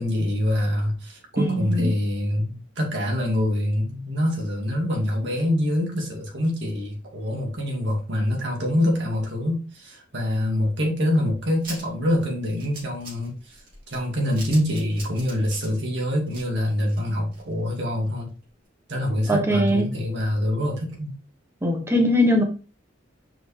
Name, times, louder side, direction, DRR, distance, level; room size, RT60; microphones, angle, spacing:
voice 1, 0.0-13.6 13.9-18.3 18.9-21.1, left 1 dB, 65° right, 0 dB, 2.3 m, -25 dB
voice 2, 1.4-1.9 19.3-19.9 21.6-22.4, equal, 15° right, 3 dB, 1.4 m, -21 dB
sound 1, 11.6-17.7 18.1-18.2 18.4-18.5, right 2 dB, 50° right, 3.5 m, -42 dB
5.8 x 5.0 x 3.5 m, 0.34 s
head